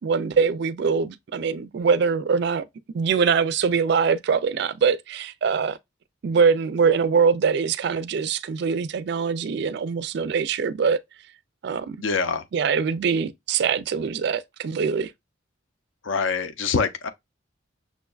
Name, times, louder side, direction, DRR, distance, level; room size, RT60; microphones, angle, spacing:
voice 1, 0.0-2.7 2.9-5.8 6.2-11.0 11.6-12.0 12.5-15.1, right 5 dB, 55° right, 0.3 m, -23 dB
voice 2, 12.0-12.4 16.0-17.1, left 5 dB, 70° left, 0.5 m, -24 dB
6.2 x 2.2 x 2.2 m
head